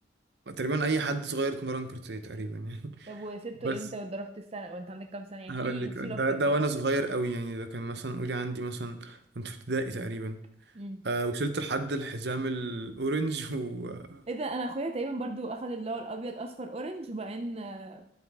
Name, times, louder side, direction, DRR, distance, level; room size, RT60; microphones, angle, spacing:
voice 1, 0.5-3.1 3.6-3.8 5.5-10.4 11.0-14.2, right 2 dB, 65° right, 9 dB, 0.9 m, -31 dB
voice 2, 3.1-6.6 10.7-11.1 14.3-18.0, right 2 dB, 35° right, 6 dB, 0.6 m, -37 dB
10.5 x 8.1 x 3.6 m, 0.71 s
head